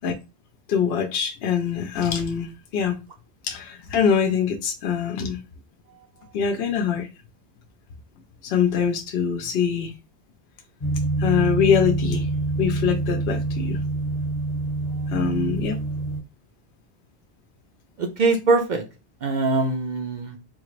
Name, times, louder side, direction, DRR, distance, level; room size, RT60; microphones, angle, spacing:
voice 1, 0.7-3.0 3.4-5.4 6.3-7.1 8.4-9.9 11.2-12.3 12.6-13.8 15.1-15.8, left 7 dB, 70° left, 0.8 m, -23 dB
sound 1, 10.8-16.2, right 2 dB, 35° left, 1.0 m, -26 dB
voice 2, 18.0-18.8 19.2-20.4, right 3 dB, 55° right, 0.6 m, -22 dB
3.7 x 2.5 x 3.1 m
omnidirectional pair, 1.1 m